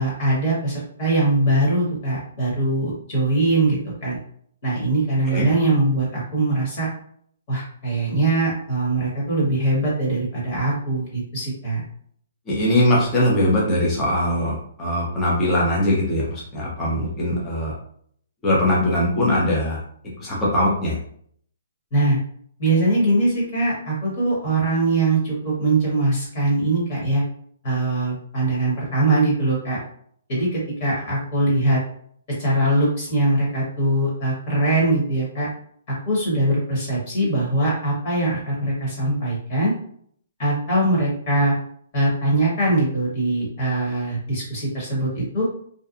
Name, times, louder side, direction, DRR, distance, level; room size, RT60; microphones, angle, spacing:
voice 1, 0.0-4.2 4.6-6.9 7.5-11.8 21.9-22.2 22.6-27.2 27.6-29.8 30.3-31.8 32.4-35.5 36.0-39.7 40.4-41.5 41.9-45.5, right 2 dB, 30° left, -5 dB, 1.2 m, -22 dB
voice 2, 12.5-17.7 18.4-19.8 20.2-21.0, left 1 dB, 15° left, -6 dB, 0.6 m, -21 dB
2.6 x 2.2 x 2.4 m, 0.62 s
hypercardioid pair, 170°, 0 cm